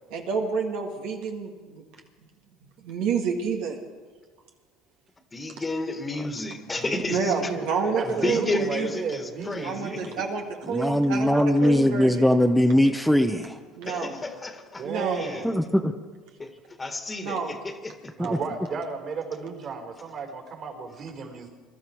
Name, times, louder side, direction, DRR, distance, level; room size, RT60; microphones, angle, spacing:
voice 1, 0.1-1.8 2.8-3.8 7.1-8.9 9.6-12.3 13.8-14.2 14.8-15.3 17.2-17.6, right 5 dB, 75° right, 1 dB, 1.9 m, -29 dB
voice 2, 5.3-7.5 8.0-10.3 13.8-15.5 16.4-18.1, left 2 dB, 20° left, 6 dB, 1.8 m, -32 dB
voice 3, 6.8-10.3 14.8-15.5 18.2-21.5, right 5 dB, 55° right, 3 dB, 4.5 m, -34 dB
voice 4, 10.6-13.6 15.4-15.9 18.2-18.4, left 1 dB, ahead, 5 dB, 0.9 m, -21 dB
22.0 x 12.5 x 4.6 m, 1.4 s
hypercardioid pair, 75°, 0 cm